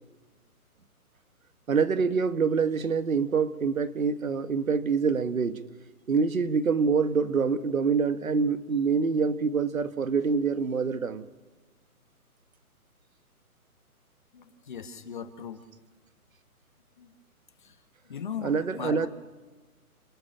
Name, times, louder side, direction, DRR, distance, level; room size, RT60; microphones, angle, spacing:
voice 1, 1.7-5.6 6.1-11.3 18.4-19.1, right 5 dB, 65° right, 1.8 m, -26 dB
voice 2, 14.3-15.6 17.0-17.1 17.6-17.8 18.1-19.1, left 7 dB, 35° left, 1.6 m, -38 dB
30.0 x 13.0 x 8.9 m
hypercardioid pair, 170°, 45 cm